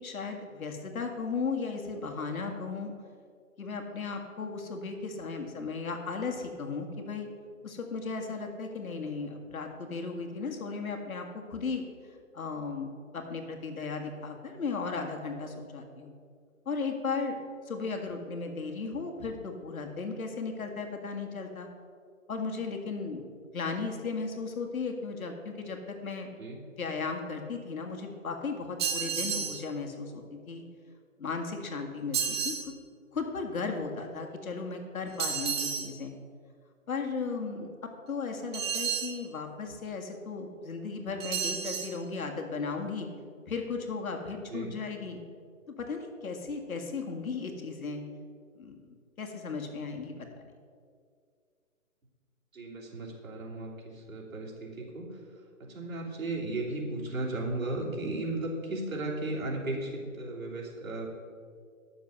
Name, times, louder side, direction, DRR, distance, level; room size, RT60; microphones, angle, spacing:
voice 1, 0.0-2.9 3.6-7.3 7.6-11.8 12.3-16.1 16.7-17.4 17.7-21.7 22.3-23.2 23.5-26.3 26.7-30.6 31.2-32.6 33.1-36.1 36.9-37.7 38.1-43.1 43.5-45.2 45.7-48.1 48.6-48.8 49.2-50.1 50.4-50.5, left 4 dB, 80° left, 3 dB, 1.9 m, -36 dB
sound 1, 28.8-29.6 32.1-32.7 35.2-35.9 38.5-39.2 41.2-41.9, right 7 dB, 20° right, 0.7 m, -31 dB
voice 2, 52.5-55.2 55.6-61.1, right 2 dB, 75° right, -2 dB, 3.2 m, -35 dB
10.5 x 6.9 x 6.6 m, 2.2 s
hypercardioid pair, 155°, 41 cm